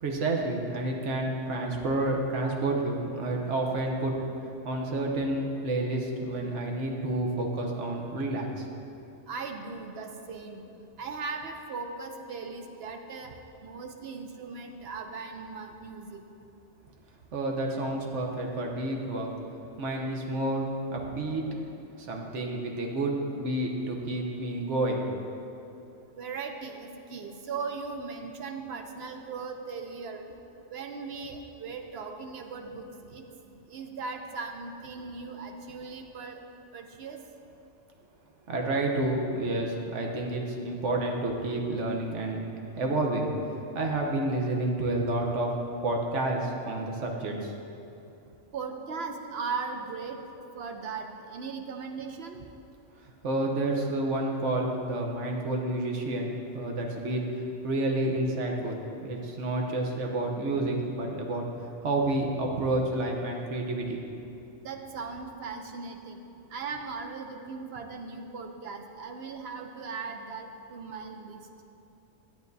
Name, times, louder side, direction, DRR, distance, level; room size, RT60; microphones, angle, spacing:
voice 1, 0.0-4.1 4.6-8.7 17.3-19.3 19.8-21.6 22.0-25.1 38.5-42.4 42.8-43.3 43.7-45.5 45.8-47.5 53.2-61.4 61.8-64.0, right 2 dB, 80° right, 1 dB, 1.2 m, -29 dB
voice 2, 9.3-10.7 11.0-13.3 13.6-16.2 26.1-30.2 30.7-36.4 36.7-37.2 48.5-50.2 50.5-52.4 64.6-66.2 66.5-71.4, right 4 dB, 60° right, 4 dB, 0.8 m, -38 dB
10.5 x 8.6 x 2.7 m, 2.8 s
omnidirectional pair, 1.2 m